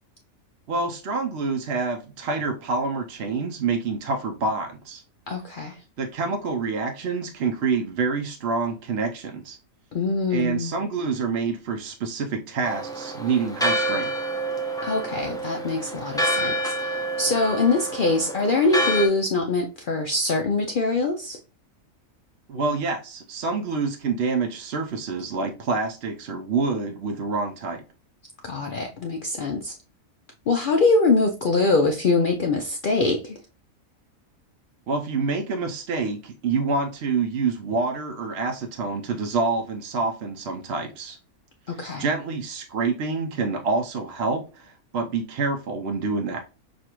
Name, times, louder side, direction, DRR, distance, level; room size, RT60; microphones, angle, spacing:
voice 1, 0.7-5.0 6.0-9.6 10.3-14.2 22.5-27.8 34.9-41.2 41.7-46.4, right 4 dB, 60° right, 3 dB, 0.7 m, -27 dB
voice 2, 5.3-5.8 9.9-10.8 14.8-21.4 28.4-29.7 30.5-33.4 41.7-42.1, left 3 dB, 80° left, 3 dB, 0.4 m, -23 dB
Church bell, 12.6-19.1, right 1 dB, 5° left, 0.5 m, -28 dB
6.3 x 2.4 x 2.9 m, 0.33 s
omnidirectional pair, 1.5 m